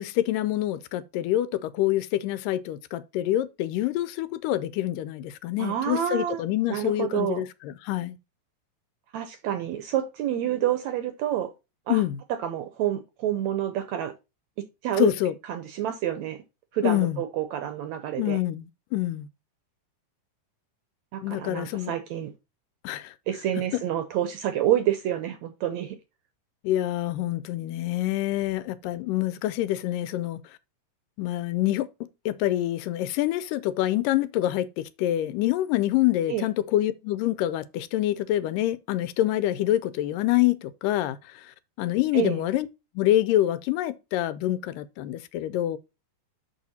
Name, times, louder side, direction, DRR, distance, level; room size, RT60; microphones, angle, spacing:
voice 1, 0.0-8.2 11.9-12.2 15.0-15.4 16.8-17.2 18.2-19.3 21.2-21.9 22.8-23.1 23.7-23.8 26.6-30.4 31.2-31.9 32.3-42.7 43.0-45.8, left 14 dB, 85° left, 2.2 m, -26 dB
voice 2, 5.6-6.4 6.7-7.4 9.1-11.5 11.9-12.0 12.4-14.1 14.8-15.1 15.5-16.4 16.7-18.4 21.1-22.3 23.3-26.0 36.3-36.5 42.1-42.4, right 11 dB, 75° right, 1.7 m, -28 dB
6.5 x 5.6 x 4.2 m
omnidirectional pair, 3.9 m